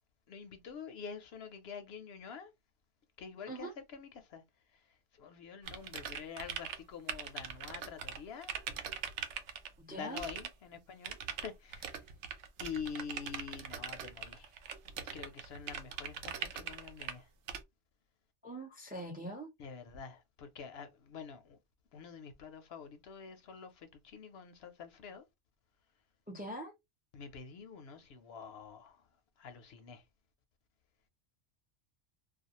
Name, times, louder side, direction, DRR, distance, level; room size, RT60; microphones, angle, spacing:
voice 1, 0.3-2.5 3.2-4.4 4.7-8.5 9.9-12.0 12.6-14.5 15.1-17.3 19.6-21.6 21.9-25.3 27.1-29.1 29.4-30.0, left 6 dB, 65° left, 0.7 m, -47 dB
sound 1, 5.7-6.8 7.1-9.7 10.2-10.5 11.0-17.1 17.5-17.6, right 8 dB, 75° right, 0.9 m, -41 dB
voice 2, 9.8-10.2 18.4-19.5 26.3-26.7, right 1 dB, 10° right, 0.4 m, -43 dB
2.4 x 2.3 x 2.8 m
omnidirectional pair, 1.2 m